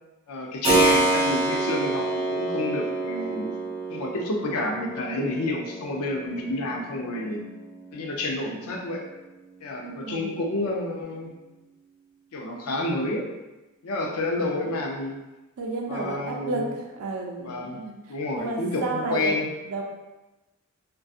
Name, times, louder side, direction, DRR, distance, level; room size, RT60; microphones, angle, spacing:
voice 1, 0.3-3.5 3.9-7.5 7.9-9.0 9.6-11.4 12.3-13.2 13.8-15.2 15.9-16.8 17.4-17.8 18.1-19.5, left 2 dB, 90° left, 0 dB, 0.5 m, -29 dB
Keyboard (musical), 0.6-9.2, right 2 dB, 30° right, 0.6 m, -28 dB
voice 2, 9.8-10.4 15.6-18.0 18.4-19.4 19.7-19.8, right 3 dB, 75° right, 0 dB, 0.5 m, -31 dB
2.6 x 2.2 x 2.4 m, 1.0 s
head